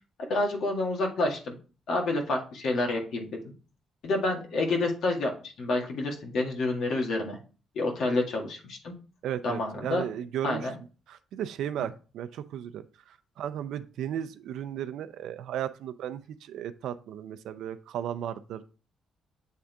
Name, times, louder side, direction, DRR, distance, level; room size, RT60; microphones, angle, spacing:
voice 1, 0.3-1.6 1.9-3.3 4.0-7.4 7.8-8.9 9.4-10.0 10.4-10.7, left 2 dB, 70° left, 1 dB, 2.0 m, -28 dB
voice 2, 9.2-10.7 11.1-18.6, right 10 dB, 80° right, 12 dB, 0.5 m, -35 dB
8.4 x 3.7 x 3.4 m, 0.36 s
cardioid pair, 90°, 0 cm